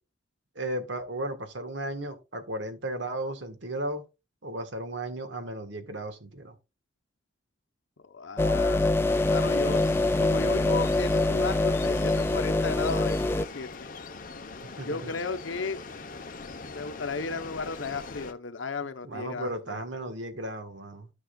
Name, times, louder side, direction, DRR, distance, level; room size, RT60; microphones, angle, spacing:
voice 1, 0.5-4.0 4.4-6.5 14.6-15.1 19.0-21.1, right 1 dB, 65° right, 1.4 m, -35 dB
voice 2, 8.0-13.9 14.8-15.8 16.7-19.8, left 4 dB, 75° left, 0.8 m, -34 dB
sound 1, 8.4-13.5, left 2 dB, 10° left, 0.3 m, -24 dB
sound 2, 9.1-18.3, left 3 dB, 45° left, 0.8 m, -41 dB
13.5 x 6.1 x 2.3 m
head